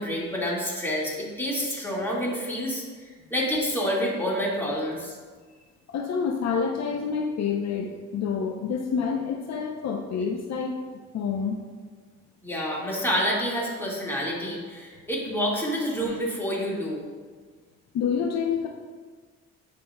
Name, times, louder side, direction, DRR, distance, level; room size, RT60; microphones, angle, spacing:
voice 1, 0.0-2.8 3.3-5.2 12.4-17.0, equal, 5° left, -4 dB, 1.8 m, -28 dB
voice 2, 5.9-10.8 11.1-11.6 17.9-18.7, left 6 dB, 60° left, 2 dB, 0.6 m, -28 dB
9.8 x 5.2 x 2.2 m, 1.5 s
cardioid pair, 90°, 30 cm